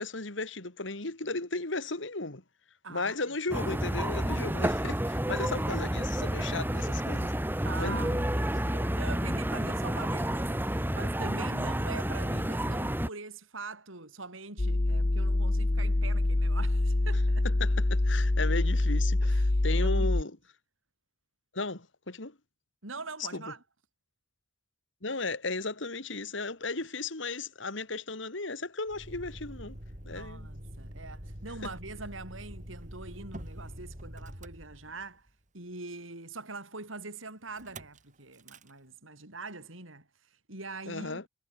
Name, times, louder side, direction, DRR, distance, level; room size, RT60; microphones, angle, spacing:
voice 1, 0.0-2.4 2.9-7.3 7.8-8.2 17.6-20.3 21.5-22.3 23.3-23.4 25.0-29.8 30.1-30.5 40.9-41.2, left 3 dB, 70° left, 2.5 m, -35 dB
voice 2, 2.8-3.3 7.6-17.5 19.2-20.1 22.8-23.6 30.1-35.3 35.5-41.3, right 3 dB, 90° right, 6.2 m, -43 dB
sound 1, 3.5-13.1, right 1 dB, 10° right, 1.9 m, -30 dB
sound 2, 14.6-20.2, left 2 dB, 35° left, 0.8 m, -25 dB
Motor vehicle (road), 28.9-35.3 37.6-38.0 38.3-38.7, equal, 40° right, 7.2 m, -45 dB
head